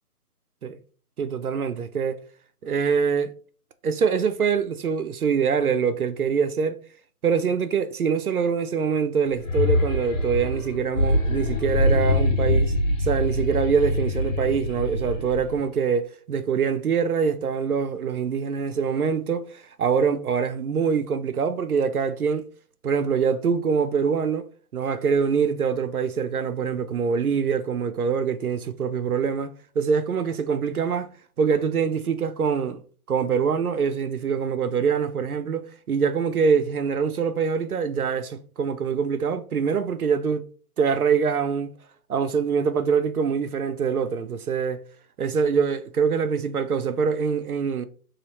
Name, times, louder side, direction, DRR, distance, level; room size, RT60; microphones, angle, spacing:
voice 1, 1.2-2.2 2.6-3.3 3.8-6.8 7.2-12.7 13.0-22.5 22.8-31.1 31.4-32.8 33.1-40.4 40.8-41.7 42.1-44.8 45.2-47.9, right 6 dB, 70° right, 0.5 m, -24 dB
sound 1, 9.3-15.6, left 1 dB, 60° left, 0.9 m, -24 dB
3.2 x 2.4 x 4.0 m
figure-of-eight pair, 180°, 47 cm